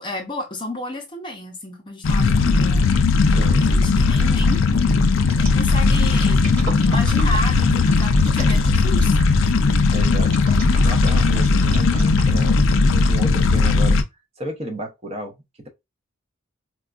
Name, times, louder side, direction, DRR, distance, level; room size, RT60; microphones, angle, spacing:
voice 1, 0.0-2.9 3.6-4.7 5.2-6.5 6.8-9.2, left 1 dB, 25° left, 0.6 m, -31 dB
sound 1, 2.0-14.0, left 4 dB, 70° left, 0.4 m, -17 dB
sound 2, 2.9-3.2 3.5-9.4 9.9-12.6 13.0-13.1, right 2 dB, 45° right, 2.0 m, -36 dB
voice 2, 3.3-3.7 9.9-10.3 10.8-12.6 12.9-14.0 14.4-15.7, right 1 dB, 30° right, 0.7 m, -32 dB
4.3 x 2.2 x 2.4 m
head